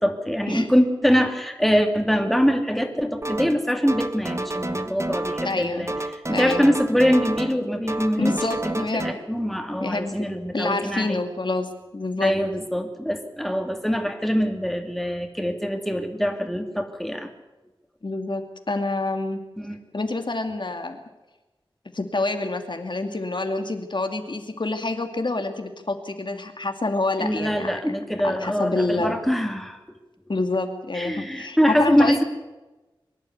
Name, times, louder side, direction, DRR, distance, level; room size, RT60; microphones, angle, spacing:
voice 1, 0.0-5.9 6.3-8.3 8.7-11.2 12.2-17.3 19.6-19.8 27.2-29.8 30.9-32.2, equal, ahead, 4 dB, 2.7 m, -23 dB
sound 1, 3.2-3.6 3.9-5.6 5.9-7.6 7.9-9.1, right 1 dB, 30° right, 1.3 m, -30 dB
voice 2, 5.4-5.9 6.3-6.6 8.2-9.2 9.8-10.3 10.5-12.4 18.0-19.4 19.9-21.0 21.9-27.8 28.2-29.2 30.3-32.2, left 2 dB, 60° left, 6 dB, 2.4 m, -27 dB
23.5 x 11.5 x 9.5 m, 1.1 s
wide cardioid pair, 60°, 9 cm